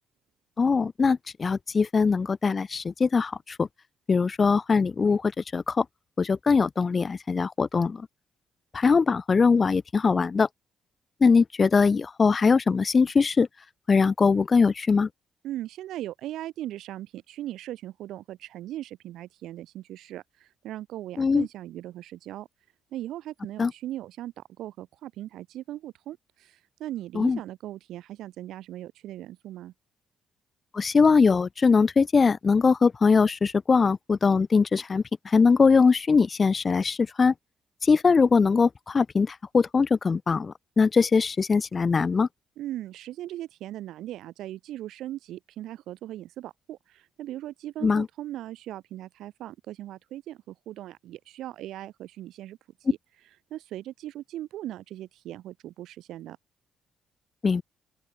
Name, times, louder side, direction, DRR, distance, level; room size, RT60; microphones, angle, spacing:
voice 1, 0.6-3.7 4.1-5.9 6.2-8.1 8.7-10.5 11.2-13.5 13.9-15.1 21.2-21.5 23.6-23.7 27.1-27.4 30.7-37.3 37.8-42.3 47.8-48.1 57.4-57.6, left 5 dB, 35° left, 0.5 m, -21 dB
voice 2, 15.4-22.5 22.9-29.7 42.6-52.6 52.9-53.0 53.5-56.4, right 13 dB, 85° right, 2.3 m, -39 dB
open air
cardioid pair, 90°, 0 cm